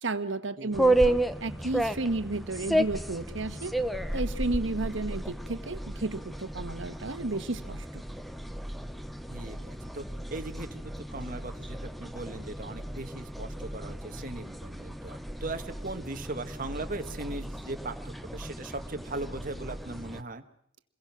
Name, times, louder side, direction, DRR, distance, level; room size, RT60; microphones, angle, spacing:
voice 1, 0.0-3.7 4.1-8.0, right 2 dB, 80° right, 11 dB, 1.3 m, -33 dB
voice 2, 0.6-1.1 9.3-10.0 10.3-20.4, right 2 dB, 45° right, 6 dB, 1.4 m, -39 dB
sound 1, 0.7-20.2, right 1 dB, ahead, 0.8 m, -33 dB
27.0 x 22.0 x 6.1 m, 0.70 s
head